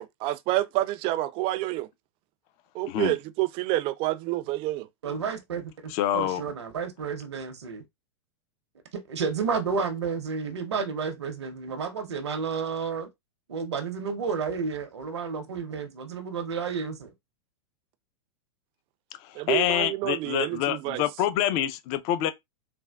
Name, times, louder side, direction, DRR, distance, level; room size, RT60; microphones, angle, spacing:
voice 1, 0.0-1.9 2.7-4.9 19.4-21.0, right 16 dB, 40° right, 0.3 m, -28 dB
voice 2, 5.0-5.7 6.1-7.8 8.9-13.1 13.5-17.1, right 5 dB, 85° right, 0.6 m, -31 dB
voice 3, 5.9-6.4 19.2-22.3, left 12 dB, 45° left, 0.4 m, -26 dB
3.4 x 2.2 x 2.2 m
hypercardioid pair, 105°, 14 cm